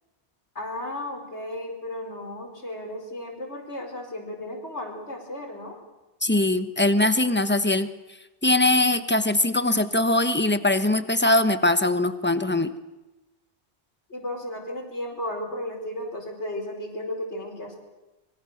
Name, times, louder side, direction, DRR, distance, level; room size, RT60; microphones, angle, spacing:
voice 1, 0.5-5.8 14.1-17.8, left 1 dB, 90° left, 2 dB, 5.2 m, -34 dB
voice 2, 6.2-7.9 8.4-12.7, left 2 dB, 10° left, 10 dB, 1.1 m, -21 dB
24.5 x 23.0 x 6.7 m, 1.1 s
omnidirectional pair, 1.1 m